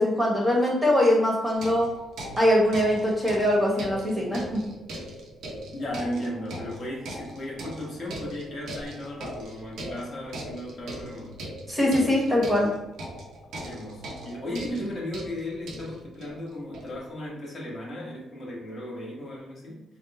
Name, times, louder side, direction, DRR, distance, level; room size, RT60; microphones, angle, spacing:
voice 1, 0.0-1.9 2.4-4.6 11.7-12.7, left 1 dB, 10° right, -4 dB, 1.4 m, -22 dB
sound 1, 1.5-17.1, right 1 dB, 75° right, 0.8 m, -40 dB
voice 2, 5.7-11.4 13.6-19.8, left 1 dB, 45° left, -3 dB, 1.3 m, -36 dB
3.5 x 2.1 x 4.2 m, 0.94 s
cardioid pair, 90°, 0 cm